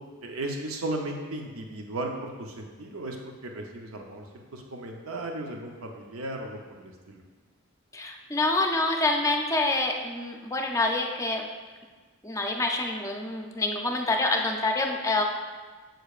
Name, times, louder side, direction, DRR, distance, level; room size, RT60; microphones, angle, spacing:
voice 1, 0.2-3.2 3.4-4.2 4.5-7.2, right 1 dB, 70° right, 2 dB, 0.7 m, -35 dB
voice 2, 7.9-11.4 12.2-15.2, left 2 dB, 15° left, 2 dB, 0.5 m, -27 dB
7.7 x 6.7 x 2.4 m, 1.4 s
head